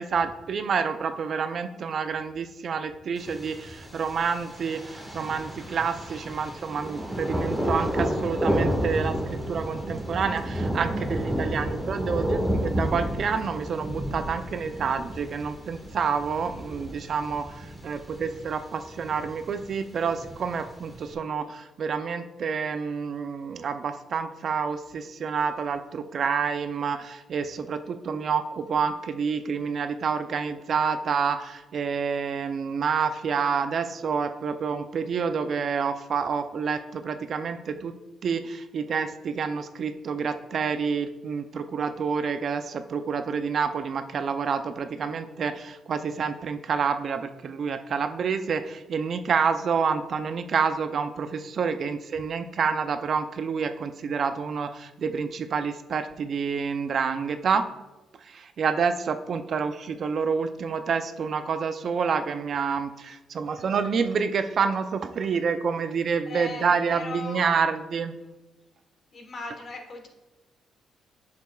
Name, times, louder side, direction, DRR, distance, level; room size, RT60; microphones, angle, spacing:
voice 1, 0.0-37.9 38.2-57.7 58.2-68.1, right 6 dB, 55° right, 9 dB, 0.4 m, -28 dB
Thunder, 3.2-21.1, equal, ahead, 1.5 m, -31 dB
voice 2, 16.5-16.8 44.9-45.2 66.3-67.6 69.1-70.1, left 3 dB, 45° left, 3 dB, 1.3 m, -39 dB
8.0 x 6.6 x 2.3 m, 1.0 s
cardioid pair, 90°, 0 cm